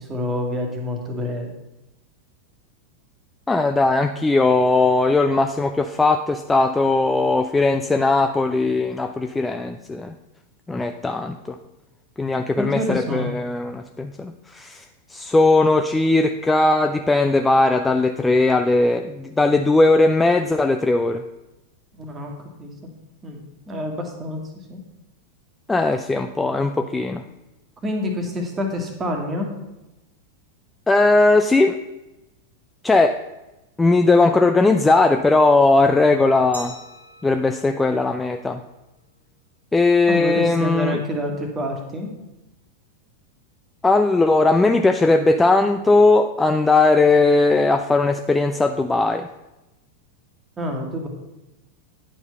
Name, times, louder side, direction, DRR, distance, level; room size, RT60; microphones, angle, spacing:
voice 1, 0.0-1.5 12.6-13.3 21.9-22.3 22.6-22.9 23.2-24.8 27.8-29.5 40.1-42.1 50.6-51.1, left 1 dB, 20° right, 2 dB, 1.6 m, -27 dB
voice 2, 3.5-10.1 10.7-11.6 12.2-14.8 15.1-21.2 25.7-27.2 30.9-31.8 32.8-33.2 33.8-36.7 37.2-38.6 39.7-41.0 43.8-49.3, left 3 dB, 10° left, 6 dB, 0.4 m, -18 dB
Glass, 36.5-39.3, right 1 dB, 80° right, 1.8 m, -44 dB
9.7 x 4.6 x 5.4 m, 0.99 s
figure-of-eight pair, 90°, 0 cm